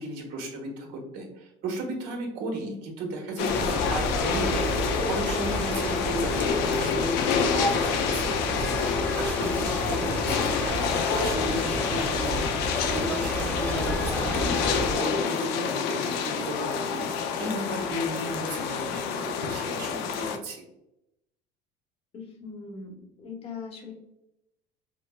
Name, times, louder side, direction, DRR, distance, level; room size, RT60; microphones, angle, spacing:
voice 1, 0.0-4.6 5.0-12.5 12.8-17.1 17.4-20.6, right 1 dB, 65° right, 0 dB, 1.1 m, -35 dB
sound 1, 3.4-20.4, left 6 dB, 70° left, 0.5 m, -28 dB
sound 2, 3.5-15.0, equal, 10° left, 0.8 m, -31 dB
voice 2, 22.1-23.9, left 5 dB, 35° left, 1 dB, 1.0 m, -40 dB
5.1 x 2.1 x 2.2 m, 0.85 s
cardioid pair, 120°, 17 cm